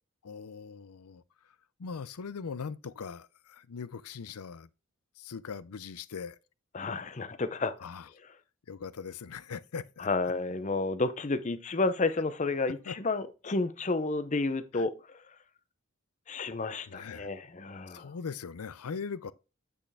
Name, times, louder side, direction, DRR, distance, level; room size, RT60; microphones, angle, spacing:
voice 1, 0.2-1.2 1.8-4.7 5.2-6.4 7.8-8.1 8.7-10.1 12.9-13.0 14.7-14.8 16.9-17.3 17.9-19.3, left 5 dB, 90° left, 0.5 m, -40 dB
voice 2, 6.7-7.7 10.0-15.2 16.3-18.1, left 3 dB, 30° left, 0.6 m, -31 dB
8.7 x 5.5 x 3.4 m
head